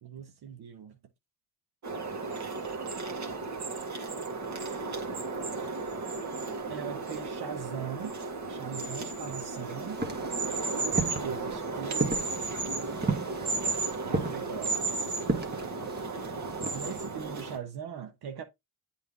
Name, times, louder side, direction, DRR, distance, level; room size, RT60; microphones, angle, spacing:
voice 1, 0.0-1.0 6.7-8.2 8.5-10.0 10.8-12.2 14.0-15.2 16.7-18.4, right 7 dB, 75° right, 1.2 m, -40 dB
sound 1, 1.8-17.6, right 3 dB, 45° right, 1.9 m, -34 dB
sound 2, 9.9-17.0, right 3 dB, 25° right, 1.4 m, -34 dB
8.1 x 3.9 x 3.6 m
cardioid pair, 70°, 39 cm